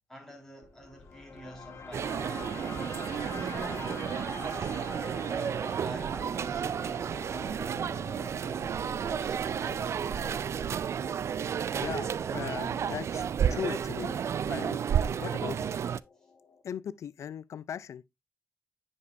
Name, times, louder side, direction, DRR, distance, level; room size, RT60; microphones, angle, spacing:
voice 1, 0.1-5.2 5.7-8.9 9.2-10.5, equal, 10° left, 3.5 m, -48 dB
sound 1, 0.6-16.6, left 5 dB, 55° left, 1.4 m, -47 dB
sound 2, 1.9-16.0, right 8 dB, 65° right, 0.3 m, -32 dB
voice 2, 11.7-15.7 16.6-18.0, left 8 dB, 75° left, 0.4 m, -39 dB
9.6 x 5.2 x 2.6 m
cardioid pair, 80°, 5 cm